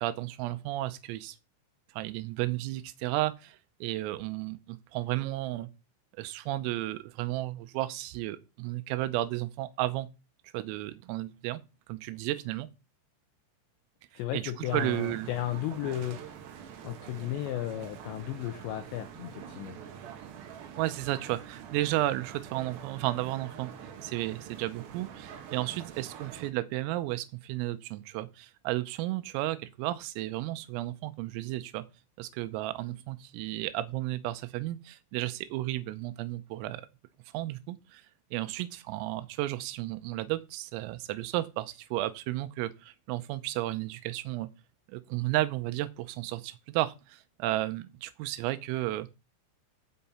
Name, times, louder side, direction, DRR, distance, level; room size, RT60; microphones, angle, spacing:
voice 1, 0.0-1.4 1.9-5.7 6.2-10.1 10.5-11.6 11.9-12.7 14.3-14.4 14.7-15.3 15.8-15.9 20.8-23.7 24.0-31.8 32.2-36.8 37.3-38.0 38.3-44.5 44.9-49.1, right 16 dB, 90° right, 3.5 m, -33 dB
voice 2, 14.2-16.4 16.8-19.8, left 12 dB, 80° left, 2.7 m, -34 dB
sound 1, 14.6-26.5, right 8 dB, 65° right, 2.7 m, -46 dB
15.0 x 5.7 x 4.3 m
omnidirectional pair, 5.9 m